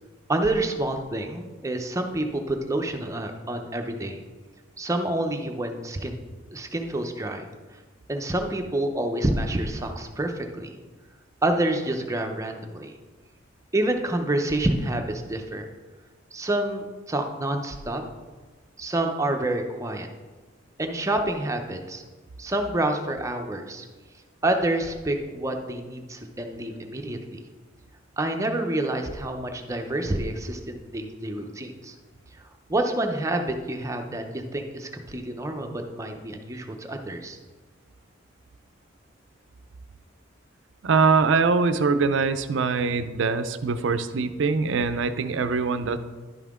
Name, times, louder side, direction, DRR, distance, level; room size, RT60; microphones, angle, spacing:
voice 1, 0.3-4.2 4.8-6.2 6.5-7.4 8.1-10.8 11.4-12.9 13.7-15.6 16.3-18.0 18.8-20.1 20.8-22.0 22.4-23.9 24.4-27.4 28.2-31.9 32.4-34.2 34.5-37.4, right 1 dB, 15° right, 4 dB, 0.6 m, -28 dB
voice 2, 40.8-46.0, right 4 dB, 70° right, 11 dB, 0.5 m, -23 dB
11.0 x 5.7 x 3.6 m, 1.3 s
head